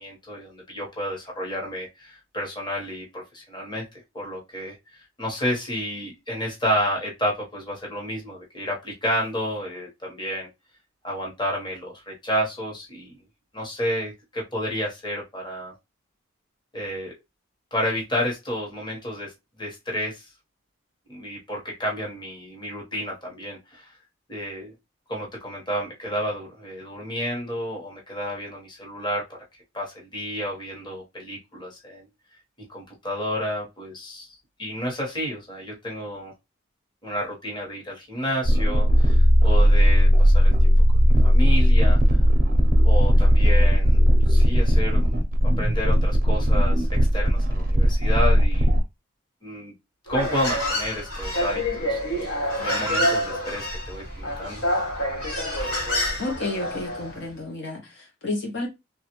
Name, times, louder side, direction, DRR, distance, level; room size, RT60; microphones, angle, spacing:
voice 1, 0.0-3.8 4.1-4.8 5.2-10.5 11.0-13.1 13.5-15.7 16.7-17.1 17.7-19.3 19.6-20.3 21.1-23.9 24.3-24.7 25.1-29.2 29.7-32.1 32.7-36.3 37.0-40.7 41.0-42.0 42.8-44.0 44.3-45.1 45.4-46.9 47.1-48.7 49.4-49.7 50.1-54.6, equal, 20° left, 1.1 m, -31 dB
sound 1, 38.4-48.8, equal, 40° right, 0.5 m, -17 dB
Human voice, 50.1-57.2, equal, 90° left, 1.6 m, -27 dB
voice 2, 56.2-58.7, left 2 dB, 55° left, 0.7 m, -31 dB
3.1 x 2.4 x 2.9 m
head